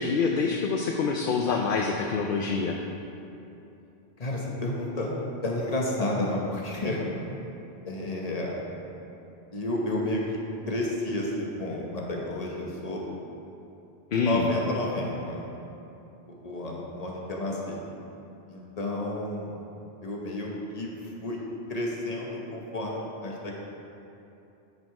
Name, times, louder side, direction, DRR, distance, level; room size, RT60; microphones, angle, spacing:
voice 1, 0.0-2.8 14.1-14.5, left 5 dB, 60° left, 1 dB, 0.7 m, -26 dB
voice 2, 4.2-5.1 5.4-7.0 7.9-8.6 9.5-10.2 10.7-13.0 14.1-15.4 16.3-17.8 18.5-19.5 20.0-21.4 21.7-23.7, left 1 dB, 40° left, -2 dB, 1.2 m, -31 dB
9.4 x 5.0 x 4.7 m, 2.8 s
omnidirectional pair, 1.1 m